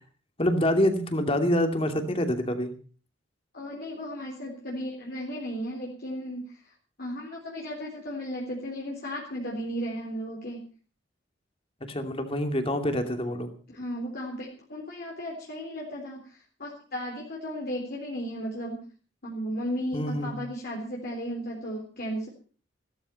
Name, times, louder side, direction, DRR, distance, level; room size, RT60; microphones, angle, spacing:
voice 1, 0.4-2.7 11.9-13.5 19.9-20.4, equal, 30° left, 6 dB, 2.6 m, -26 dB
voice 2, 3.5-6.7 7.0-10.6 13.7-18.9 19.2-22.3, equal, 55° left, -2 dB, 3.8 m, -35 dB
16.0 x 14.0 x 5.7 m, 0.40 s
head